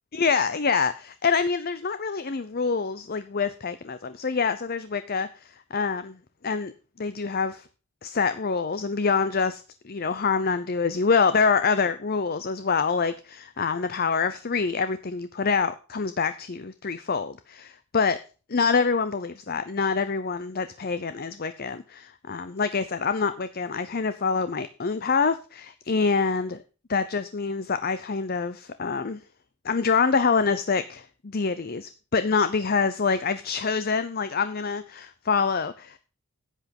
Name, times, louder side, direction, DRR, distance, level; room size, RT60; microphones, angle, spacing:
voice 1, 0.1-6.2 6.4-6.7 7.0-7.6 8.0-18.2 18.5-26.6 26.9-29.2 29.6-36.0, left 5 dB, 45° left, 12 dB, 0.7 m, -26 dB
11.0 x 8.1 x 5.3 m, 0.35 s
head